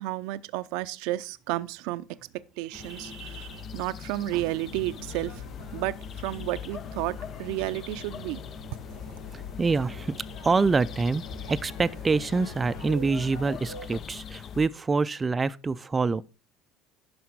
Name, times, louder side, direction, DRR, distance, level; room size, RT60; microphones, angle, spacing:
voice 1, 0.0-2.1 2.6-8.4, right 17 dB, 75° right, 0.5 m, -32 dB
sound 1, 2.7-14.7, left 8 dB, 45° left, 0.5 m, -42 dB
sound 2, 4.7-13.9, left 4 dB, 85° left, 4.9 m, -43 dB
voice 2, 9.3-10.2 10.4-16.2, right 4 dB, 20° right, 0.4 m, -26 dB
11.5 x 5.0 x 4.6 m
supercardioid pair, 100°, 0 cm